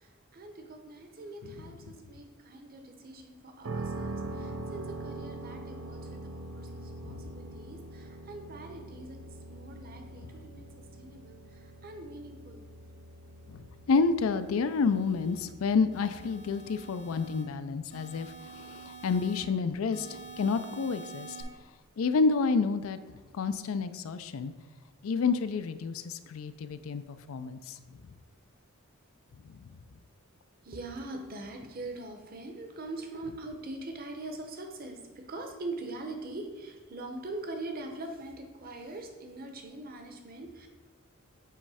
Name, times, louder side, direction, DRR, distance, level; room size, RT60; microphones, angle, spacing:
voice 1, 0.0-9.2 9.5-12.7 30.6-40.7, right 2 dB, 45° right, 4 dB, 0.8 m, -43 dB
sound 1, 3.6-19.5, right 2 dB, 85° right, 0.5 m, -44 dB
voice 2, 4.2-4.7 7.0-7.2 13.5-21.4 22.0-24.5 25.0-27.8 29.4-29.7, left 4 dB, 80° left, 12 dB, 0.4 m, -30 dB
sound 2, 14.3-15.4 15.9-17.4 17.9-19.4 19.9-21.4, right 4 dB, 60° left, 1.2 m, -48 dB
7.8 x 3.1 x 4.9 m, 1.3 s
head